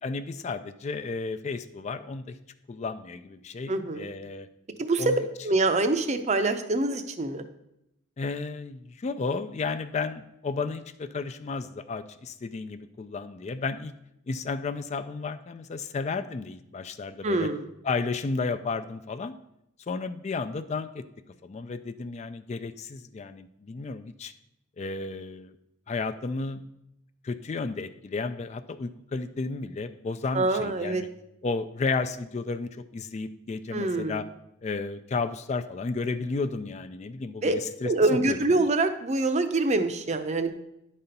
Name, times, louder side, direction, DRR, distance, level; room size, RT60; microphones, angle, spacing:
voice 1, 0.0-2.4 2.7-4.5 5.0-5.1 8.2-13.9 14.3-17.5 17.8-19.3 19.9-21.0 21.4-24.3 24.8-25.5 25.9-26.6 27.2-31.1 31.4-34.2 34.6-37.9 38.3-38.4, left 4 dB, 35° left, 11 dB, 0.3 m, -33 dB
voice 2, 3.7-4.1 4.8-7.5 17.2-17.7 30.3-31.0 33.7-34.2 37.4-37.6 37.8-40.5, right 2 dB, 35° right, 9 dB, 0.6 m, -25 dB
10.5 x 4.2 x 5.2 m, 0.83 s
head